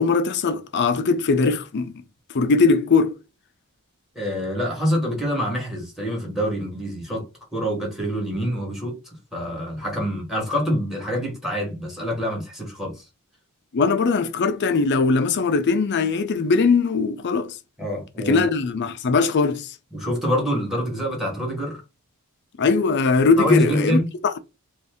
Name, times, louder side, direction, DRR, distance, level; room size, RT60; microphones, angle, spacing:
voice 1, 0.0-1.9 2.3-3.1 13.7-17.6 18.2-19.7 22.6-24.0 24.2-24.4, left 4 dB, 50° left, 0.5 m, -20 dB
voice 2, 4.1-7.3 7.5-9.0 9.3-13.0 17.8-18.5 19.9-21.8 23.4-24.1, equal, ahead, 1.3 m, -26 dB
2.6 x 2.5 x 3.5 m
head